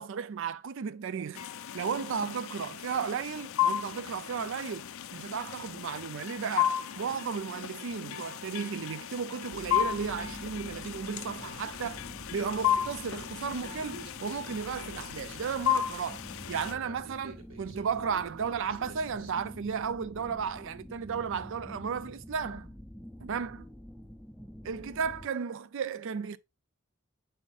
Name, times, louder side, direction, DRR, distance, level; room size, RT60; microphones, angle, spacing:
voice 1, 0.0-1.5 1.7-4.9 5.1-12.0 12.3-16.2 16.5-22.7 23.2-23.7 24.6-26.4, right 6 dB, 60° right, 0.4 m, -34 dB
sound 1, 1.4-16.7, left 10 dB, 65° left, 0.5 m, -34 dB
sound 2, 9.5-25.3, equal, ahead, 0.4 m, -47 dB
Human voice, 13.8-19.8, right 2 dB, 85° right, 1.6 m, -51 dB
7.1 x 5.7 x 2.5 m
head